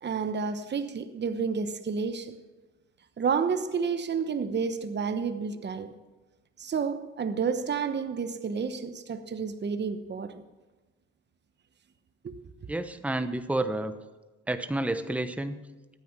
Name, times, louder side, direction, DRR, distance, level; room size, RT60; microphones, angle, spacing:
voice 1, 0.0-2.3 3.2-5.9 6.6-10.4 12.2-12.4, right 5 dB, 35° right, 1.0 m, -30 dB
voice 2, 12.7-13.9 14.5-15.6, right 1 dB, 5° right, 0.9 m, -30 dB
14.5 x 9.7 x 6.0 m
cardioid pair, 90°, 30 cm